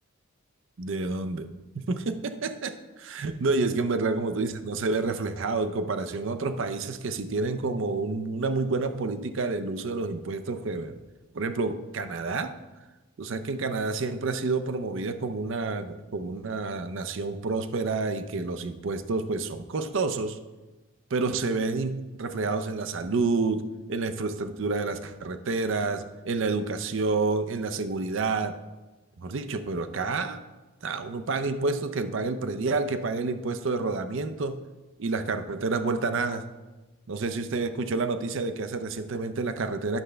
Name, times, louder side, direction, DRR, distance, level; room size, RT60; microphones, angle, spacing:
voice 1, 0.8-1.5 1.7-11.0 11.3-12.5 13.2-20.4 21.1-28.6 29.2-30.4 30.8-34.6 35.0-36.4 37.1-40.0, right 3 dB, 60° right, 9 dB, 0.5 m, -29 dB
9.6 x 6.6 x 3.3 m, 1.2 s
head